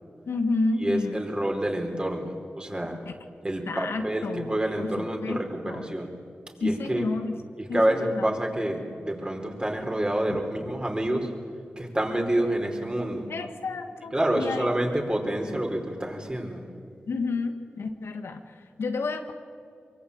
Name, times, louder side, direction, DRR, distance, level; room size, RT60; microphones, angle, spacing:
voice 1, 0.3-1.2 3.7-5.9 6.6-7.4 7.7-8.3 10.3-10.4 13.3-14.7 17.1-19.3, left 3 dB, 85° left, 6 dB, 1.6 m, -30 dB
voice 2, 0.8-3.0 3.4-6.1 6.6-7.1 7.6-11.3 11.8-13.3 14.1-16.6, right 1 dB, 20° right, 2 dB, 4.6 m, -28 dB
23.5 x 23.5 x 8.7 m, 2.4 s
cardioid pair, 55°, 4 cm